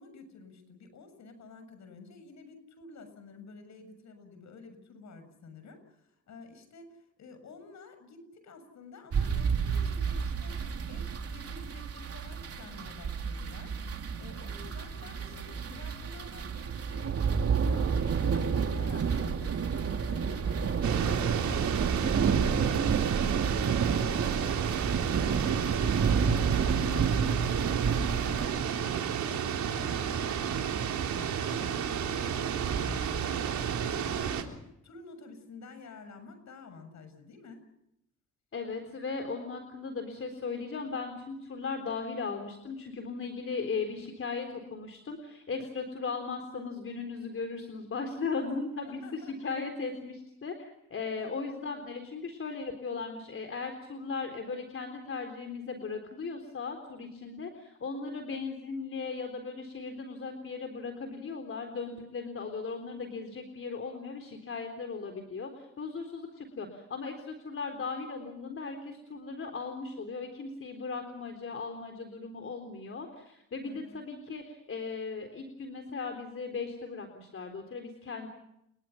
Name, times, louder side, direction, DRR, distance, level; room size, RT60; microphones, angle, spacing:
voice 1, 0.0-10.6 10.9-13.8 14.2-37.7 48.8-49.5 51.2-51.3 73.6-74.0, left 4 dB, 65° left, 9 dB, 7.1 m, -50 dB
sound 1, 9.1-28.5, right 6 dB, 50° right, 3.2 m, -30 dB
sound 2, 20.8-34.4, right 8 dB, 70° right, 3.6 m, -32 dB
voice 2, 38.5-78.3, left 4 dB, 45° left, 5 dB, 3.9 m, -37 dB
30.0 x 22.0 x 5.9 m, 0.80 s
cardioid pair, 90°, 30 cm